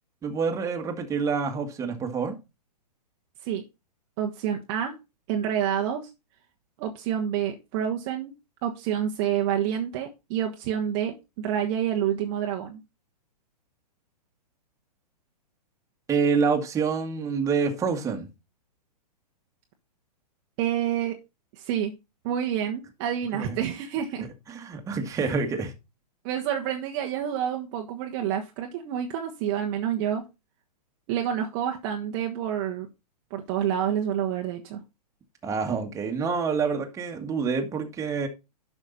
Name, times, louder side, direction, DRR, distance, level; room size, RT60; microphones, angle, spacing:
voice 1, 0.2-2.3 16.1-18.3 23.3-23.6 24.5-25.7 35.4-38.3, right 5 dB, 15° right, 1.8 m, -27 dB
voice 2, 4.2-5.0 5.3-6.1 6.8-8.3 8.6-12.8 20.6-21.2 21.5-21.9 22.2-24.3 25.2-25.3 26.2-30.2 31.1-32.9 33.3-34.8, right 9 dB, 35° right, 1.2 m, -28 dB
11.5 x 6.0 x 4.1 m
figure-of-eight pair, 115°, 21 cm